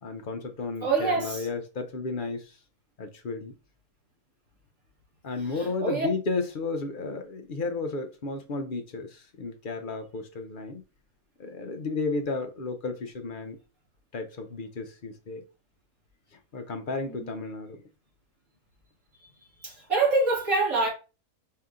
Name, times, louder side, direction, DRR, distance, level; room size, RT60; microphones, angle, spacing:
voice 1, 0.0-2.5 3.0-3.5 5.2-10.8 11.4-13.6 14.1-15.4 16.5-17.8, left 3 dB, 50° left, 0.6 m, -33 dB
voice 2, 0.8-1.5 5.5-6.1 17.1-17.3 19.6-20.9, right 3 dB, 70° right, 3.2 m, -26 dB
5.1 x 2.8 x 3.6 m
omnidirectional pair, 1.5 m